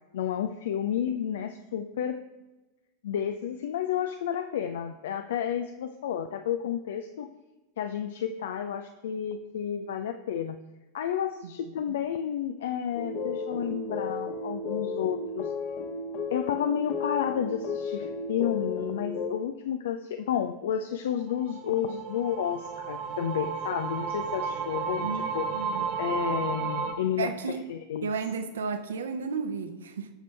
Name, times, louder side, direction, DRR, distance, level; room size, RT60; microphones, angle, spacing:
voice 1, 0.1-2.2 3.0-7.3 7.8-10.6 10.9-15.5 16.3-25.4 26.0-27.3 27.7-28.1, left 9 dB, 60° left, 9 dB, 0.5 m, -31 dB
sound 1, 12.9-19.3, left 3 dB, 40° left, 1.3 m, -34 dB
sound 2, 21.2-26.9, right 6 dB, 40° right, 1.7 m, -33 dB
voice 2, 25.0-25.8 27.2-27.6 28.0-30.1, right 5 dB, 65° right, 7 dB, 1.1 m, -33 dB
18.5 x 6.7 x 3.4 m, 1.1 s
figure-of-eight pair, 90°, 0 cm